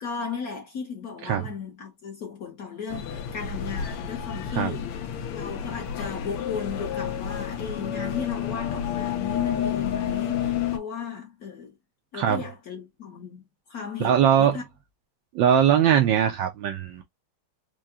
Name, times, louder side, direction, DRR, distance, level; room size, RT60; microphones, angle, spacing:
voice 1, 0.0-5.0 5.3-11.8 12.1-13.4 13.7-14.6, left 6 dB, 55° left, 1.1 m, -35 dB
sound 1, 2.9-10.8, left 9 dB, 80° left, 1.7 m, -30 dB
voice 2, 14.0-14.6 15.3-17.0, right 9 dB, 75° right, 1.1 m, -21 dB
4.7 x 2.2 x 2.7 m
omnidirectional pair, 2.4 m